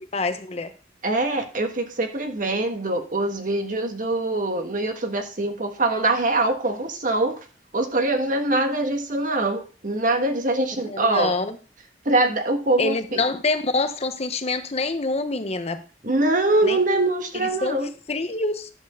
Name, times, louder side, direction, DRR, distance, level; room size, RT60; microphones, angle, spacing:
voice 1, 0.1-0.7 10.8-11.6 12.8-15.8 16.6-16.8 17.3-17.8 18.1-18.7, left 3 dB, 35° left, 9 dB, 0.8 m, -26 dB
voice 2, 1.0-7.4 7.7-11.3 12.0-13.2 16.0-17.9, right 2 dB, 50° right, 5 dB, 1.5 m, -23 dB
10.5 x 4.4 x 6.8 m, 0.36 s
head